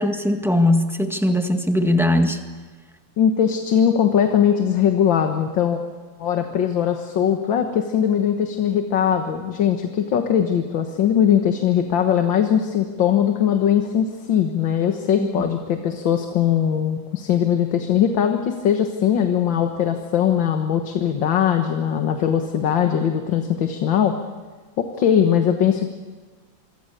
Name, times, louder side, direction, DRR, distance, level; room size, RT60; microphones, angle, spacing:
voice 1, 0.0-2.4 15.2-15.5, left 1 dB, ahead, 5 dB, 1.6 m, -20 dB
voice 2, 3.2-5.8 6.2-24.2 24.8-25.9, left 9 dB, 75° left, 5 dB, 2.1 m, -20 dB
26.5 x 23.5 x 6.7 m, 1.4 s
omnidirectional pair, 2.1 m